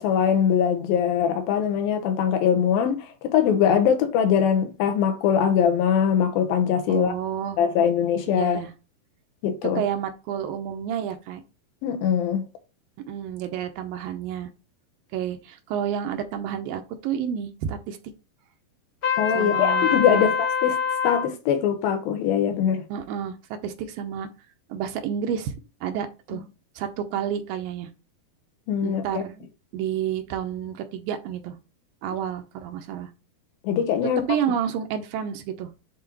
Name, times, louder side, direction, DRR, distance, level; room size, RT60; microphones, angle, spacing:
voice 1, 0.0-7.1 7.6-8.6 9.4-9.8 11.8-12.4 19.2-20.3 20.6-20.8 21.0-22.8 28.7-29.2 33.6-34.2, left 8 dB, 85° left, 2.9 m, -22 dB
voice 2, 6.9-7.6 8.4-8.7 9.8-11.4 13.1-14.5 15.1-18.0 19.3-20.3 22.9-23.4 23.6-24.3 24.7-25.5 25.8-26.4 26.8-27.9 28.8-29.5 29.7-31.6 32.0-33.1 34.3-35.7, right 9 dB, 85° right, 2.6 m, -30 dB
Trumpet, 19.0-21.3, left 7 dB, 40° left, 1.2 m, -24 dB
10.0 x 3.9 x 3.1 m
omnidirectional pair, 4.1 m